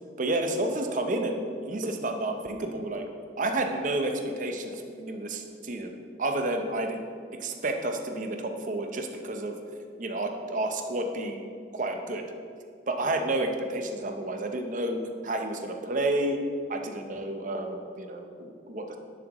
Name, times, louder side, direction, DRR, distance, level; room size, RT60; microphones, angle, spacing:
voice 1, 0.2-3.1 3.4-7.0 7.4-9.6 10.0-11.4 11.7-12.2 12.9-16.4 16.7-19.0, right 2 dB, 45° right, 4 dB, 0.7 m, -30 dB
9.8 x 7.6 x 3.0 m, 2.2 s
head